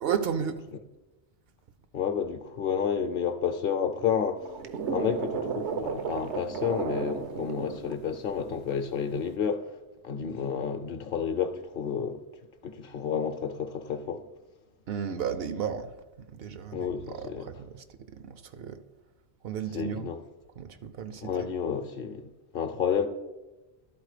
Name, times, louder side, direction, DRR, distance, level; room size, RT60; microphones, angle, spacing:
voice 1, 0.0-0.7 14.9-18.8 19.4-20.1 20.6-21.5, right 7 dB, 65° right, 0.7 m, -34 dB
voice 2, 1.9-4.5 4.9-9.8 10.0-12.2 12.6-14.2 16.7-17.5 19.7-20.2 21.2-23.1, left 7 dB, 60° left, 0.8 m, -30 dB
sound 1, 4.4-8.6 9.0-9.3, right 6 dB, 85° right, 1.1 m, -33 dB
12.0 x 4.1 x 4.9 m
omnidirectional pair, 1.1 m